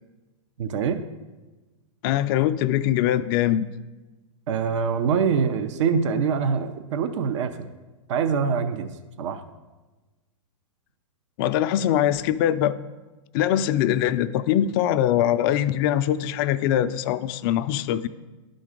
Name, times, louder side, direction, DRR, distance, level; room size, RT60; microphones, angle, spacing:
voice 1, 0.6-1.0 4.5-7.7 8.1-8.9 9.2-9.4, right 6 dB, 60° right, 9 dB, 0.6 m, -24 dB
voice 2, 2.0-3.7 11.4-12.8 13.3-18.1, left 11 dB, 45° left, 13 dB, 0.4 m, -22 dB
11.0 x 3.8 x 5.1 m, 1.2 s
hypercardioid pair, 120°, 17 cm